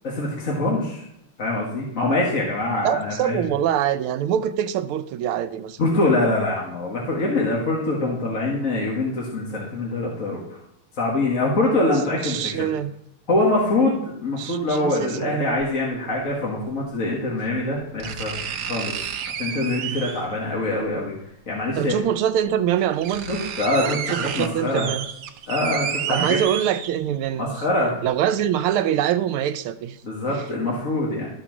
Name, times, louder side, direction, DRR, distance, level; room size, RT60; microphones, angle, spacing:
voice 1, 0.0-1.0 1.4-3.4 5.8-10.6 10.9-12.7 13.3-21.1 21.5-21.9 23.3-24.9 25.5-26.4 27.4-28.0 30.0-31.3, left 2 dB, 40° left, 1.8 m, -24 dB
voice 2, 2.8-5.8 12.2-12.9 14.4-15.4 21.8-23.3 23.8-25.1 26.1-27.5 28.0-30.0 30.3-30.4, right 10 dB, 90° right, 1.5 m, -24 dB
sound 1, 15.6-15.7 17.1-17.2 18.0-20.4 21.7-21.8 22.5-22.6 22.8-27.2 27.7-27.8, right 8 dB, 65° right, 1.2 m, -31 dB
13.0 x 4.6 x 6.0 m
omnidirectional pair, 2.3 m